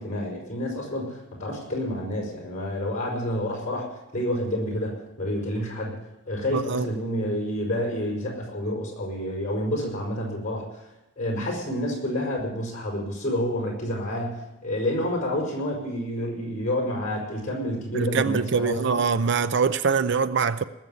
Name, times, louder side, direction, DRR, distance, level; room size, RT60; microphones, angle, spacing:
voice 1, 0.0-6.0 6.3-10.6 11.2-19.0, left 1 dB, 35° left, 5.3 m, -29 dB
voice 2, 6.5-6.8 17.9-20.6, right 5 dB, 55° right, 0.5 m, -23 dB
19.5 x 7.3 x 9.4 m
head